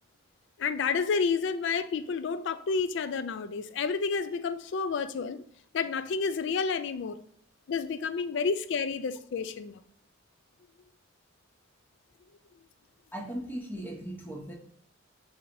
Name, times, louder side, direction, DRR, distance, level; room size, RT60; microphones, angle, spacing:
voice 1, 0.6-5.4 5.7-7.2 7.7-9.8, left 5 dB, 60° left, 12 dB, 0.3 m, -30 dB
voice 2, 13.1-14.5, right 1 dB, 10° left, 1 dB, 0.7 m, -38 dB
6.6 x 2.9 x 2.6 m, 0.66 s
head